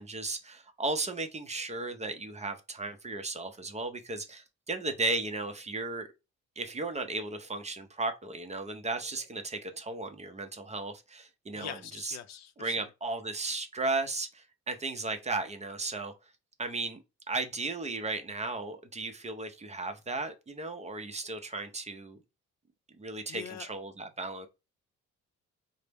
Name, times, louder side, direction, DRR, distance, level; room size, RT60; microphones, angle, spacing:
voice 1, 0.0-6.1 6.6-12.2 12.6-16.1 16.6-22.2 23.0-24.5, right 3 dB, 20° right, 0.5 m, -35 dB
voice 2, 11.5-12.9 23.3-23.7, left 10 dB, 65° left, 0.5 m, -43 dB
4.2 x 2.0 x 3.4 m
cardioid pair, 90°, 30 cm